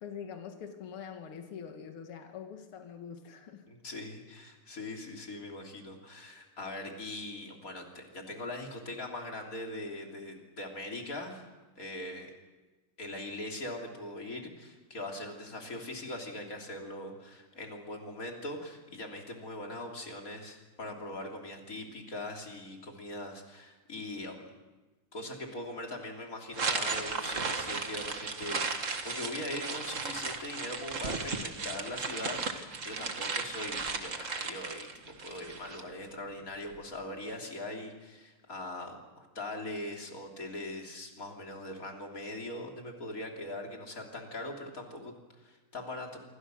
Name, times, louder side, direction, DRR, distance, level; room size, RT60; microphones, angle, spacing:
voice 1, 0.0-3.7, left 7 dB, 80° left, 5 dB, 2.4 m, -44 dB
voice 2, 3.7-11.4 11.8-12.3 13.0-24.5 25.1-34.9 35.2-46.2, left 1 dB, 40° left, 1 dB, 3.7 m, -41 dB
sound 1, 26.5-35.8, right 4 dB, 40° right, 1.9 m, -35 dB
27.0 x 23.5 x 6.4 m, 1.2 s
omnidirectional pair, 2.4 m